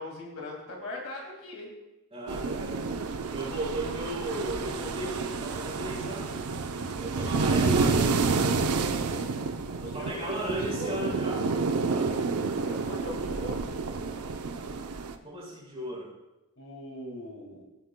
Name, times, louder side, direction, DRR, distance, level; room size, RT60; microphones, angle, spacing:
voice 1, 0.0-1.7 10.0-10.9 12.6-13.6 16.6-17.6, left 1 dB, 65° left, 0 dB, 2.2 m, -39 dB
voice 2, 2.1-2.9 3.3-6.5 7.0-8.3 9.7-11.5 11.8-12.2 14.2-14.3 15.2-16.1, right 1 dB, 30° right, -4 dB, 4.0 m, -36 dB
sound 1, 2.3-15.2, right 4 dB, 80° right, 0.6 m, -29 dB
16.0 x 8.4 x 2.2 m, 0.98 s
head